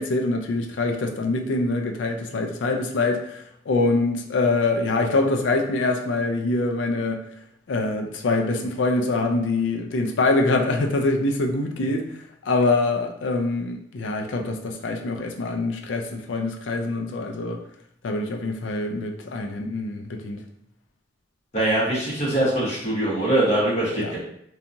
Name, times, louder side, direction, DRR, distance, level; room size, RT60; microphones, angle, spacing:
voice 1, 0.0-7.2 7.7-12.1 12.5-17.6 18.0-20.4 24.0-24.1, left 2 dB, 80° left, 3 dB, 0.4 m, -24 dB
voice 2, 21.5-24.2, right 1 dB, 35° left, -7 dB, 1.1 m, -22 dB
2.8 x 2.3 x 2.6 m, 0.73 s
head